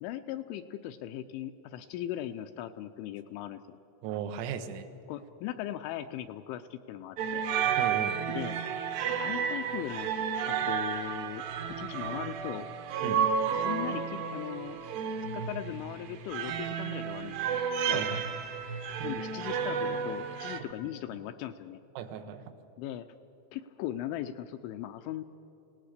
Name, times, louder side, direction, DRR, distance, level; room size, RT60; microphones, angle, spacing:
voice 1, 0.0-3.8 5.1-7.5 8.3-10.1 10.5-11.4 11.8-12.7 13.5-14.8 15.3-17.5 17.9-18.2 19.0-21.8 22.8-23.1 23.5-25.2, left 12 dB, 85° left, 8 dB, 2.8 m, -39 dB
voice 2, 4.0-4.9 7.8-8.2 13.0-13.2 17.9-18.1 19.0-19.1 22.0-22.5, right 8 dB, 85° right, 8 dB, 3.8 m, -36 dB
sound 1, 7.2-20.6, right 7 dB, 70° right, 2.8 m, -32 dB
27.0 x 18.0 x 6.6 m, 3.0 s
omnidirectional pair, 5.9 m